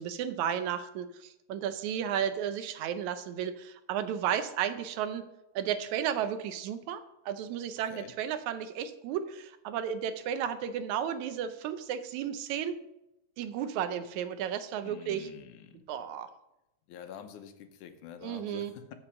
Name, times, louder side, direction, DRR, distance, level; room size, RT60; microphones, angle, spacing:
voice 1, 0.0-5.3 5.6-12.8 13.4-15.3 15.9-16.3 18.2-18.7, right 9 dB, 80° right, 10 dB, 2.0 m, -33 dB
voice 2, 14.8-15.8 16.9-18.9, left 8 dB, 90° left, 8 dB, 2.4 m, -47 dB
7.7 x 7.5 x 6.2 m, 0.89 s
omnidirectional pair, 3.4 m